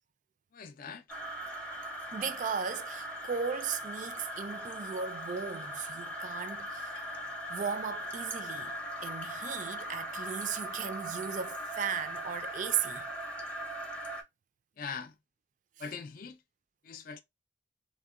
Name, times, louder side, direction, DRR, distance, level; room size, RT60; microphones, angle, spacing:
voice 1, 0.5-1.0 14.8-15.1 15.8-16.4 16.8-17.2, left 5 dB, 50° left, 0.4 m, -41 dB
sound 1, 1.1-14.2, equal, 5° left, 0.6 m, -40 dB
voice 2, 2.1-7.0 7.5-8.7 9.0-13.0, right 6 dB, 45° right, 0.4 m, -36 dB
3.6 x 2.1 x 2.4 m
head